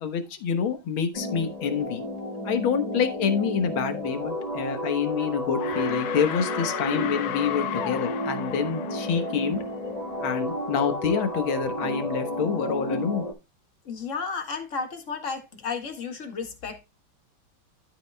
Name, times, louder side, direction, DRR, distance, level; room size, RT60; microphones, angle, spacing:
voice 1, 0.0-2.0 2.4-9.6 10.2-13.2, left 6 dB, 80° left, 2.1 m, -27 dB
sound 1, 1.1-13.3, left 1 dB, 20° left, 1.9 m, -32 dB
sound 2, 4.9-5.3 5.6-10.1, left 11 dB, 65° left, 1.0 m, -35 dB
voice 2, 13.9-16.8, left 5 dB, 40° left, 2.0 m, -33 dB
13.0 x 6.1 x 2.2 m
omnidirectional pair, 2.2 m